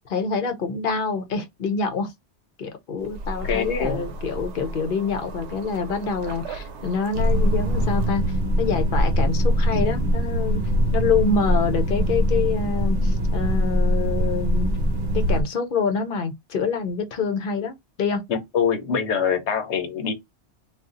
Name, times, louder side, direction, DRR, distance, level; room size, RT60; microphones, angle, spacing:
voice 1, 0.1-2.1 2.6-8.2 8.6-10.6 10.9-14.7 15.1-18.2, left 5 dB, 55° left, 0.8 m, -26 dB
sound 1, 3.0-8.1, right 2 dB, 90° right, 0.9 m, -36 dB
voice 2, 3.4-4.1 18.3-20.1, left 7 dB, 85° left, 1.1 m, -24 dB
sound 2, 7.1-15.4, equal, 50° right, 0.9 m, -22 dB
2.6 x 2.3 x 3.7 m
omnidirectional pair, 1.1 m